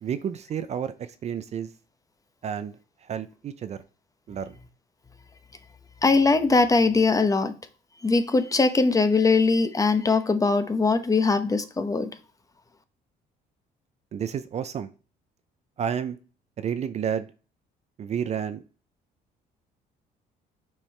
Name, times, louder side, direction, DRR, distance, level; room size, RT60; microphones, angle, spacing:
voice 1, 0.0-1.7 2.4-2.7 3.0-3.8 4.3-4.6 14.1-14.9 15.8-16.2 16.6-17.3 18.0-18.6, right 8 dB, 40° right, 0.5 m, -30 dB
voice 2, 6.0-7.5 8.0-12.1, left 3 dB, 20° left, 0.8 m, -21 dB
7.2 x 4.6 x 3.3 m
cardioid pair, 110°, 17 cm